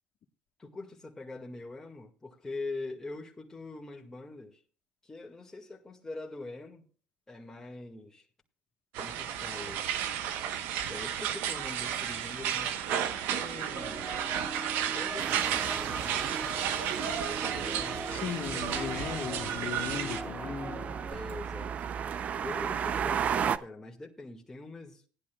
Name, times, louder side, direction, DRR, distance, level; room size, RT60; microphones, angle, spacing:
voice 1, 0.6-4.6 5.0-6.9 7.3-8.3 9.0-9.9 10.9-14.2 14.8-18.0 21.1-21.9 22.4-25.1, left 2 dB, 15° left, 1.9 m, -44 dB
sound 1, 8.9-20.2, right 9 dB, 80° right, 1.0 m, -33 dB
sound 2, 13.8-21.1, right 1 dB, 25° right, 2.0 m, -41 dB
sound 3, 15.2-23.6, right 8 dB, 45° right, 0.6 m, -35 dB
voice 2, 18.1-20.9, left 8 dB, 60° left, 1.4 m, -37 dB
18.0 x 11.0 x 2.3 m
cardioid pair, 100°, 3 cm